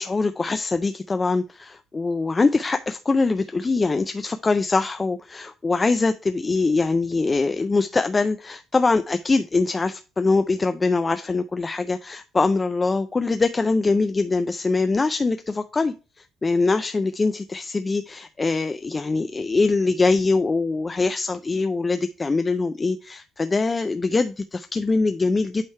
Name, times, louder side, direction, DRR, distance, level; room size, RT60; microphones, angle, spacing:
voice 1, 0.0-15.9 16.4-25.6, left 3 dB, 20° left, 9 dB, 0.3 m, -23 dB
8.5 x 3.2 x 4.5 m, 0.32 s
cardioid pair, 145°, 0 cm